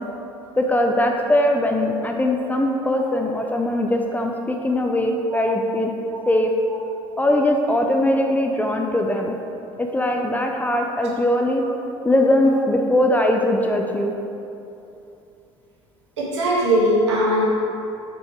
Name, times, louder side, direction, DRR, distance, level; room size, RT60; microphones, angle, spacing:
voice 1, 0.6-5.9 6.3-6.5 7.2-9.3 9.8-11.6 12.0-14.1, left 1 dB, 10° left, 2 dB, 0.6 m, -20 dB
voice 2, 16.2-17.4, right 1 dB, 75° right, -5 dB, 1.5 m, -20 dB
5.5 x 5.5 x 4.5 m, 2.8 s
figure-of-eight pair, 60°, 15 cm